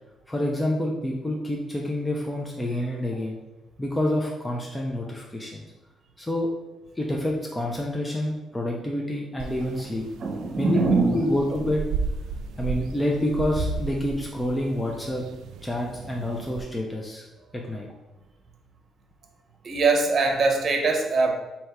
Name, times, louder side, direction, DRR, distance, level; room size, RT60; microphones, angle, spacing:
voice 1, 0.3-3.4 3.8-5.6 6.2-6.5 7.0-10.0 10.6-10.8 11.1-11.8 12.6-15.2 15.6-17.2 17.5-17.9, left 1 dB, 15° left, -1 dB, 0.6 m, -28 dB
sound 1, 9.4-16.6, right 4 dB, 80° right, 0.3 m, -34 dB
voice 2, 10.2-11.4 19.6-21.3, right 3 dB, 50° right, 2 dB, 0.8 m, -22 dB
3.4 x 2.8 x 4.4 m, 1.0 s
cardioid pair, 90°, 0 cm